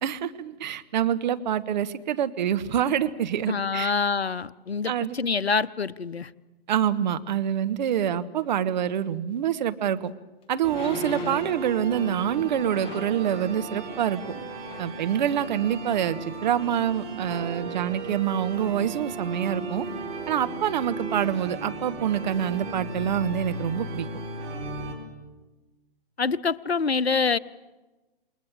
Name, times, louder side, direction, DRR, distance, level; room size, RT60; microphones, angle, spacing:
voice 1, 0.0-3.9 4.9-5.2 6.7-10.1 10.5-14.2 14.8-19.8 20.3-24.1, right 9 dB, 45° right, 11 dB, 1.4 m, -26 dB
voice 2, 3.5-6.3 26.2-27.4, left 5 dB, 80° left, 16 dB, 0.9 m, -26 dB
sound 1, 9.6-9.7 10.7-11.7 12.7-13.2 14.2-14.3 14.6-15.0 15.5-15.6, left 9 dB, 15° left, 1.2 m, -41 dB
sound 2, 10.6-24.9, right 3 dB, 20° right, 4.3 m, -36 dB
28.5 x 20.5 x 7.6 m, 1.1 s
figure-of-eight pair, 125°, 31 cm